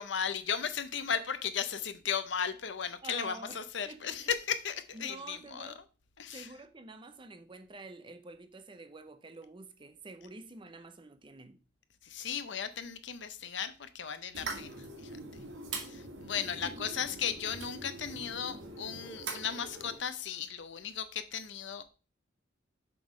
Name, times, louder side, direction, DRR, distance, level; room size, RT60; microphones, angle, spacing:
voice 1, 0.0-5.7 6.2-6.5 12.0-15.1 15.8-21.9, left 7 dB, 65° left, 0.7 m, -36 dB
voice 2, 3.0-4.3 4.9-5.8 6.3-11.6 16.5-16.8, right 3 dB, 25° right, 0.6 m, -48 dB
sound 1, 14.3-20.0, right 3 dB, 75° right, 1.9 m, -43 dB
7.6 x 3.7 x 5.0 m
head